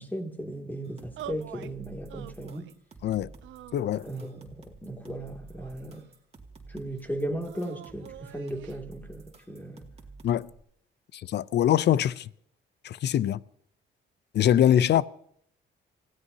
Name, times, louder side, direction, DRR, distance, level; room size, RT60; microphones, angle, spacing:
voice 1, 0.0-2.7 4.0-6.1 6.7-9.9 14.7-14.8, right 1 dB, 10° left, 2.5 m, -36 dB
sound 1, 0.8-10.6, right 3 dB, 30° right, 2.3 m, -51 dB
sound 2, 1.2-1.7 2.1-2.8 3.4-4.3 5.1-6.1 7.4-8.8, right 12 dB, 75° right, 0.5 m, -46 dB
voice 2, 3.7-4.1 10.2-10.5 11.1-12.3 12.8-13.4 14.3-15.1, left 11 dB, 60° left, 0.5 m, -23 dB
27.5 x 16.5 x 2.8 m
cardioid pair, 90°, 20 cm